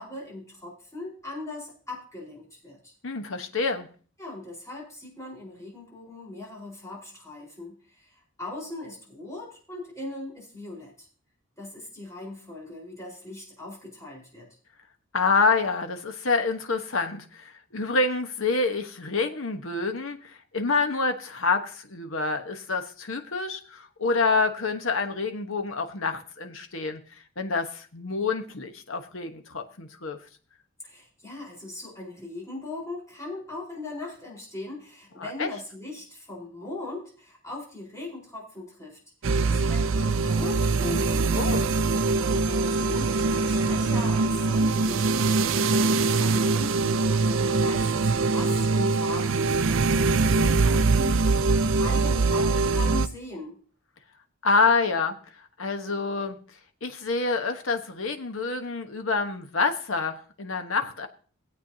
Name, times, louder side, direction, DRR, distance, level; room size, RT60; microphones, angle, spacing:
voice 1, 0.0-2.9 4.2-11.1 11.6-14.5 30.8-39.0 39.4-41.7 42.1-53.6, left 2 dB, 15° left, -4 dB, 4.5 m, -39 dB
voice 2, 3.0-3.9 15.1-27.0 27.4-30.2 35.2-35.5 41.3-41.7 54.4-56.4 56.8-61.1, left 4 dB, 70° left, 6 dB, 1.2 m, -27 dB
sound 1, 39.2-53.1, right 3 dB, 65° right, 0.5 m, -23 dB
sound 2, 39.6-53.3, right 2 dB, 85° right, 1.2 m, -46 dB
18.0 x 8.3 x 2.8 m, 0.42 s
head